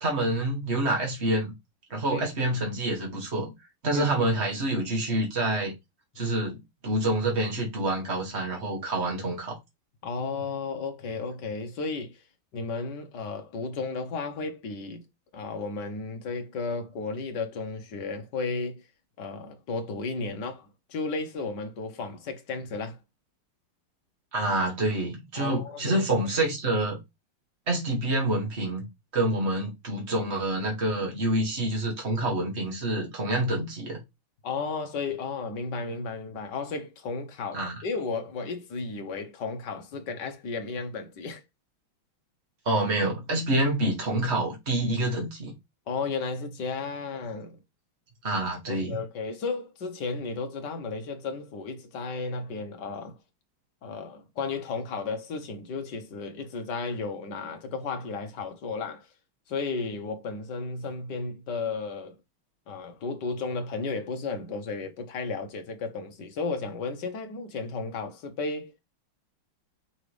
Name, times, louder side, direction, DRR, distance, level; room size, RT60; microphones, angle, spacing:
voice 1, 0.0-1.5 1.9-3.5 3.8-5.7 6.2-9.6 24.3-27.0 27.7-28.9 29.1-34.0 37.5-37.8 42.7-45.5 48.2-49.0, right 1 dB, 30° right, 2.5 m, -27 dB
voice 2, 10.0-12.2 12.5-15.0 15.3-18.8 19.2-23.0 25.4-26.1 34.4-41.4 45.9-47.6 48.7-53.2 53.8-59.1 59.5-62.2 62.7-68.8, left 4 dB, 55° left, 1.7 m, -34 dB
5.9 x 5.9 x 3.3 m
omnidirectional pair, 2.3 m